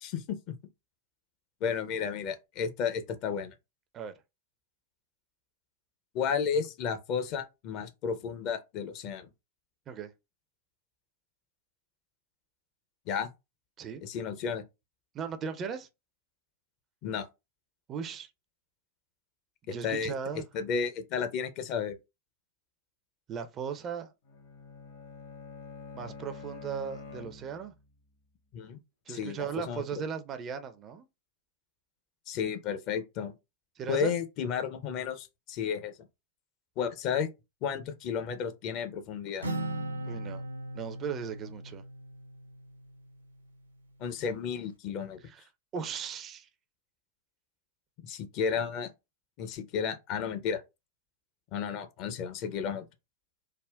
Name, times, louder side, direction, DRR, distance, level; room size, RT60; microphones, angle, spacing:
voice 1, 0.0-0.5 1.6-3.5 6.1-9.3 13.1-13.3 14.0-14.6 17.0-17.3 19.7-20.1 20.5-22.0 28.5-28.8 29.1-29.8 32.3-33.3 33.9-35.9 36.8-37.3 37.6-39.5 44.0-45.2 48.0-48.9 49.4-50.6 51.5-52.9, left 6 dB, 40° left, 0.5 m, -32 dB
voice 2, 15.1-15.9 17.9-18.3 19.7-20.4 23.3-24.1 25.9-27.7 29.1-31.1 33.8-34.1 40.0-40.4 40.7-41.8 45.2-45.4 45.7-46.5, right 7 dB, 30° right, 0.4 m, -37 dB
Bowed string instrument, 24.3-27.9, left 3 dB, 60° left, 0.9 m, -46 dB
Acoustic guitar, 39.4-43.1, right 1 dB, 80° right, 0.5 m, -38 dB
3.5 x 2.1 x 2.2 m
figure-of-eight pair, 90°, 0 cm